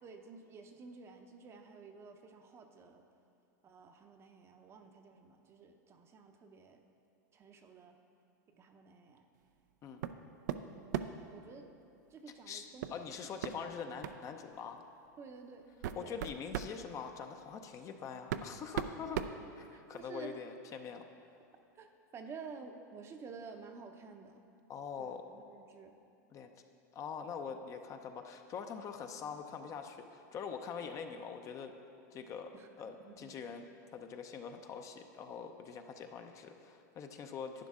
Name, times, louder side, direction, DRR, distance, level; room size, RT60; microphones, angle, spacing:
voice 1, 0.0-3.0 3.6-6.8 7.3-8.0 8.5-9.3 10.7-11.0 11.3-11.7 12.1-12.9 15.2-15.7 16.0-16.1 19.7-20.4 21.7-24.4 25.0-26.0 32.5-33.3, right 5 dB, 25° right, 5 dB, 0.7 m, -52 dB
sound 1, 10.0-10.2 10.5-11.3 12.8-13.0 13.4-13.5 14.0-14.2 15.1-15.2 15.6-16.8 17.8-17.9 18.3-20.1, right 10 dB, 75° right, 0.5 m, -38 dB
voice 2, 12.9-14.8 16.0-19.2 19.5-21.1 24.7-25.2 26.3-26.5 26.9-31.7 32.1-33.6 33.9-37.7, left 6 dB, 35° left, 6 dB, 0.6 m, -44 dB
11.5 x 9.2 x 3.7 m, 2.6 s
hypercardioid pair, 120°, 10 cm